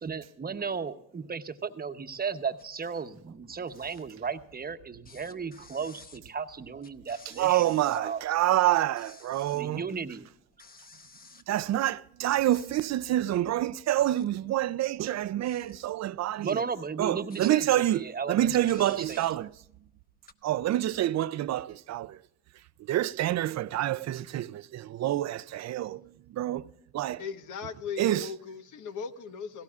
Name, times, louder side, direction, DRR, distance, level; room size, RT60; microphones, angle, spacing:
voice 1, 0.0-7.6 8.0-8.2 9.5-10.3 16.4-17.6 17.9-19.2, right 6 dB, 30° right, 0.9 m, -35 dB
sound 1, 2.6-2.9 3.2-4.7 5.0-8.4 8.7-9.7 10.1-10.2 10.5-12.1 12.4-13.1 13.7-14.5 14.9-17.9 18.3-18.4 18.6-20.3, left 4 dB, 30° left, 0.9 m, -54 dB
voice 2, 7.4-9.8 11.5-16.6 17.0-19.5 20.4-22.2 22.8-27.2 28.0-28.3, right 13 dB, 60° right, 0.5 m, -27 dB
voice 3, 27.2-29.6, left 6 dB, 80° left, 1.1 m, -38 dB
17.5 x 16.5 x 2.4 m
cardioid pair, 90°, 30 cm